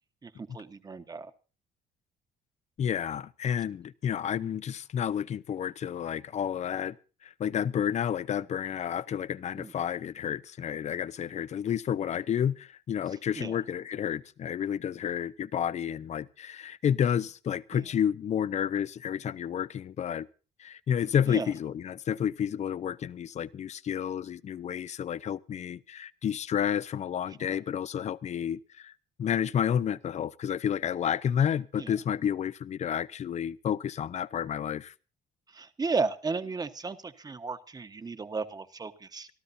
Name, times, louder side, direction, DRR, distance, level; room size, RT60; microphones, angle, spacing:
voice 1, 0.2-1.3 9.6-9.7 13.4-13.6 17.7-17.8 21.3-21.5 27.4-27.6 31.8-31.9 35.5-39.3, right 4 dB, 20° right, 1.2 m, -34 dB
voice 2, 2.8-7.0 7.2-20.3 20.6-28.9 29.2-34.9, left 9 dB, 45° left, 0.6 m, -30 dB
25.5 x 13.5 x 2.7 m
cardioid pair, 110°, 17 cm